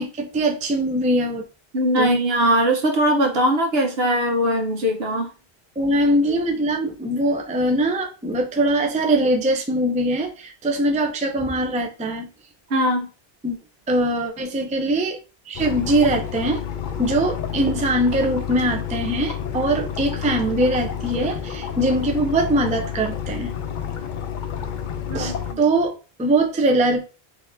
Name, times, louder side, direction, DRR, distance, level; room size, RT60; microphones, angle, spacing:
voice 1, 0.0-1.4 2.0-2.2 5.8-12.3 13.4-13.6 13.9-15.2 15.5-16.6 17.0-23.5 25.1-25.9 26.2-27.0, right 1 dB, 10° right, 2 dB, 0.3 m, -22 dB
voice 2, 1.7-5.3 12.7-13.1 25.1-25.6, equal, 75° right, 3 dB, 1.1 m, -20 dB
sound 1, 15.5-25.5, left 8 dB, 60° left, 0.6 m, -30 dB
4.1 x 2.9 x 2.6 m, 0.33 s
omnidirectional pair, 1.0 m